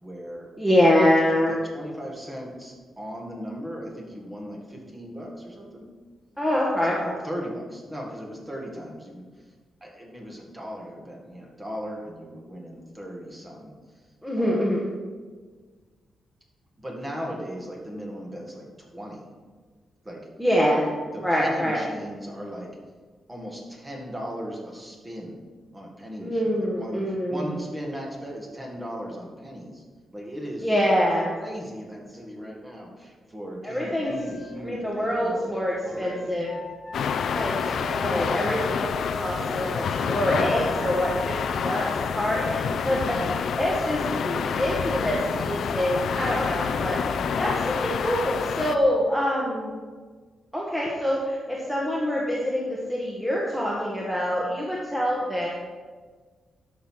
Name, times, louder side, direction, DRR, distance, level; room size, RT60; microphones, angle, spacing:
voice 1, 0.0-0.5 0.8-5.9 7.0-9.5 9.8-14.1 14.4-14.7 16.8-19.3 20.0-20.3 20.7-20.8 21.1-22.8 23.3-25.4 25.7-29.8 30.1-30.8 31.3-35.5 35.8-36.4 37.6-38.0 39.3-39.9 44.3-45.1 46.8-47.3, equal, 15° right, -1 dB, 2.0 m, -38 dB
voice 2, 0.6-1.6 6.4-7.1 14.2-14.8 20.4-20.8 21.2-21.8 26.2-27.5 30.6-31.3 33.6-34.1 34.6-36.5 37.3-41.8 42.1-47.0 47.4-49.7 50.5-55.5, equal, ahead, -4 dB, 1.4 m, -25 dB
sound 1, 34.0-42.7, left 3 dB, 30° left, 1.3 m, -42 dB
sound 2, 36.9-48.8, left 6 dB, 70° left, 0.5 m, -28 dB
12.0 x 5.7 x 4.7 m, 1.5 s
cardioid pair, 120°, 0 cm